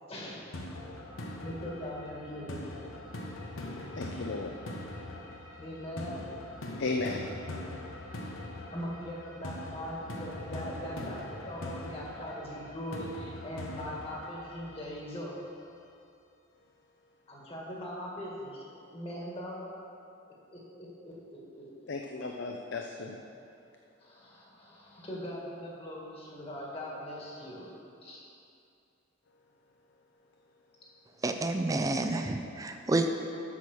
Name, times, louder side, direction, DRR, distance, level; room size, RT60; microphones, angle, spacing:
sound 1, 0.5-15.5, left 1 dB, 85° left, 1.0 m, -42 dB
voice 1, 1.4-2.7 5.6-6.3 8.2-15.4 17.3-19.7 20.5-21.9 24.0-28.3, equal, 30° left, -4 dB, 1.9 m, -41 dB
voice 2, 4.0-4.6 6.8-7.3 21.9-23.2, left 3 dB, 60° left, 2 dB, 0.6 m, -34 dB
voice 3, 31.2-33.1, right 2 dB, 15° right, 6 dB, 0.4 m, -29 dB
8.5 x 6.2 x 6.1 m, 2.6 s
head